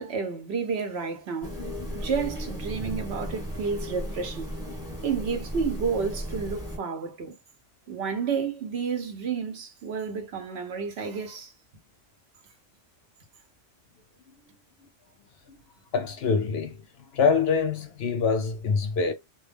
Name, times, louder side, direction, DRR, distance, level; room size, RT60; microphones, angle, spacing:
voice 1, 0.0-1.6 1.9-4.6 5.0-7.3 7.9-11.5, right 5 dB, 65° right, 0.9 m, -31 dB
sound 1, 1.4-6.8, equal, 5° right, 1.1 m, -35 dB
voice 2, 15.9-16.8 17.1-19.1, left 5 dB, 65° left, 0.7 m, -24 dB
2.3 x 2.2 x 3.2 m
omnidirectional pair, 1.3 m